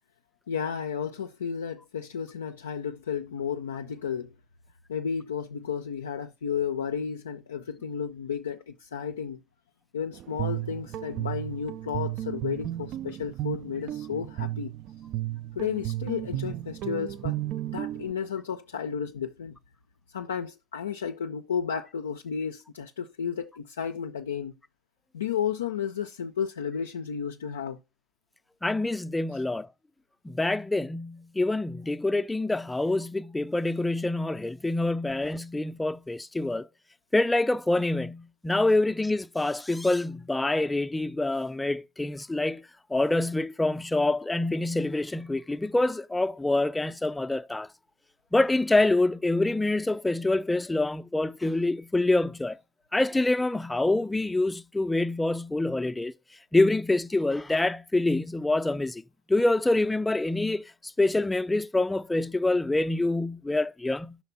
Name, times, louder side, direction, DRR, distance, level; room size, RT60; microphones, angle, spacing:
voice 1, 0.5-4.3 4.9-9.4 9.9-14.7 15.6-17.4 17.7-19.6 20.1-24.5 25.1-27.8, left 7 dB, 85° left, 0.4 m, -32 dB
Guitar, 10.1-18.1, right 14 dB, 50° right, 0.3 m, -34 dB
voice 2, 28.6-29.7 30.2-36.7 37.1-47.7 48.3-52.6 52.9-56.1 56.5-59.0 59.3-60.7 61.0-64.2, left 2 dB, 10° left, 0.4 m, -26 dB
5.6 x 4.2 x 5.6 m
hypercardioid pair, 75°, 0 cm